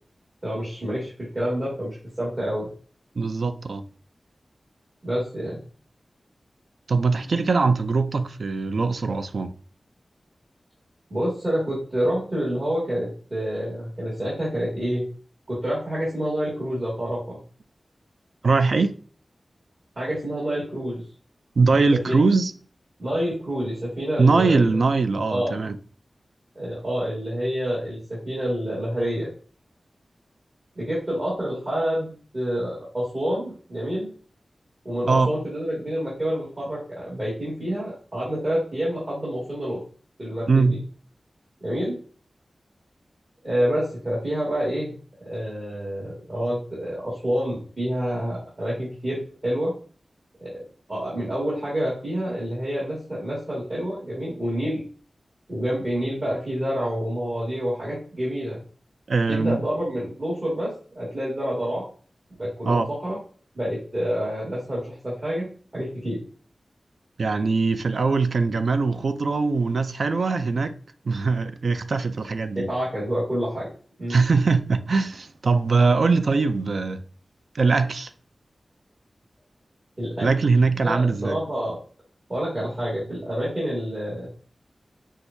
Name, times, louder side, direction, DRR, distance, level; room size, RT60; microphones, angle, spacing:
voice 1, 0.4-2.7 5.0-5.6 11.1-15.1 15.5-17.4 20.0-21.0 22.1-22.2 23.0-24.7 25.3-25.5 26.6-29.3 30.8-34.1 34.8-39.8 40.2-40.8 41.6-42.0 43.4-44.9 45.2-49.7 50.4-50.6 50.9-54.8 55.5-58.6 59.3-60.7 60.9-61.8 62.4-63.2 63.6-66.2 72.6-73.7 74.0-74.2 80.0-80.3 80.8-81.8 82.3-84.3, equal, 40° right, 1.9 m, -28 dB
voice 2, 3.2-3.8 6.9-9.5 18.4-18.9 21.6-22.5 24.2-25.8 35.1-35.3 40.5-40.8 59.1-59.6 62.7-62.9 67.2-70.7 71.1-72.7 74.1-77.0 77.5-78.1 80.2-81.4, right 4 dB, 75° right, 0.3 m, -21 dB
6.0 x 2.4 x 2.6 m
wide cardioid pair, 100°, 0 cm